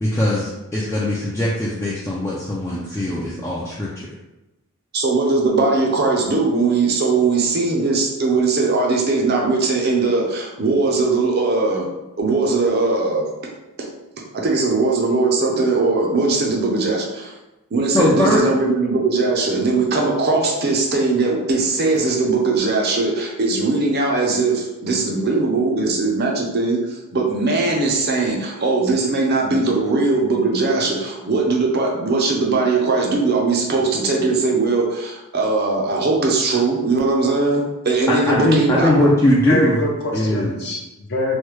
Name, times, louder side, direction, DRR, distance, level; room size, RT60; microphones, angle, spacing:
voice 1, 0.0-4.1 17.9-18.4 38.1-39.8 40.1-40.6, left 1 dB, 10° left, -7 dB, 0.3 m, -20 dB
voice 2, 4.9-11.9 12.2-13.3 14.3-17.3 17.7-38.9, right 3 dB, 45° right, -1 dB, 0.5 m, -20 dB
voice 3, 39.4-41.4, left 1 dB, 50° left, -1 dB, 0.6 m, -24 dB
3.1 x 2.2 x 3.1 m, 1.0 s
head